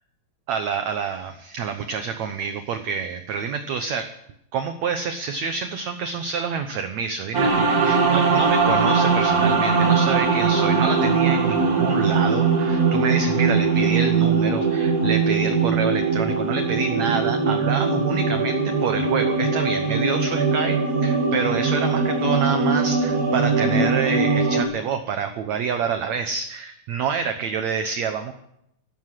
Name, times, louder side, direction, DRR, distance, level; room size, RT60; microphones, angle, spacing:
voice 1, 0.5-4.1 4.5-28.3, right 6 dB, 70° right, 8 dB, 1.7 m, -27 dB
sound 1, 7.3-24.6, right 4 dB, 40° right, 1.4 m, -21 dB
14.5 x 13.0 x 7.6 m, 0.78 s
omnidirectional pair, 4.5 m